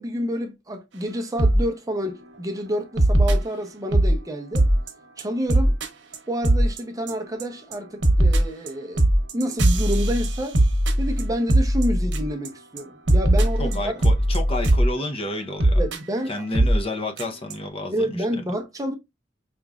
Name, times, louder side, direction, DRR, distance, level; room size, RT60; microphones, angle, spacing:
voice 1, 0.0-4.7 5.2-5.8 6.3-9.0 9.3-10.6 11.0-13.9 15.7-16.3 17.9-18.9, equal, 20° right, 0.6 m, -28 dB
sound 1, 1.4-1.6 2.0-2.3 3.0-4.2 4.5-4.9 5.2-5.3 5.5-5.9 6.1-6.2 6.4-6.8 7.1-7.4 7.7-12.5 12.8-12.9 13.1-14.9 15.6-16.0 16.5-16.8 17.2-17.3 17.5-17.6, right 1 dB, 85° right, 0.9 m, -19 dB
voice 2, 13.6-15.8 16.3-18.1, left 1 dB, 30° left, 0.7 m, -30 dB
5.0 x 3.0 x 2.4 m
head